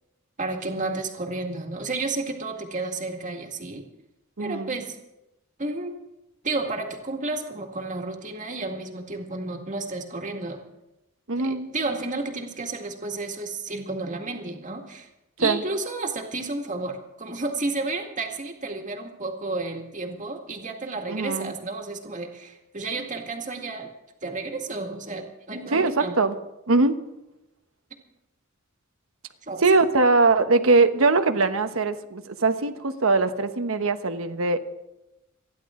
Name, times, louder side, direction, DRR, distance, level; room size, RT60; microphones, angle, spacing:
voice 1, 0.4-3.8 4.4-5.0 5.6-6.0 6.4-10.6 11.4-15.1 15.4-23.9 24.2-26.2 29.5-29.6, right 3 dB, 35° right, 3 dB, 2.0 m, -31 dB
voice 2, 4.4-4.8 11.3-11.7 15.4-15.6 21.1-21.5 25.7-26.4 26.7-27.0 29.6-34.6, right 3 dB, 75° right, 8 dB, 1.1 m, -21 dB
28.0 x 11.0 x 3.8 m, 0.93 s
head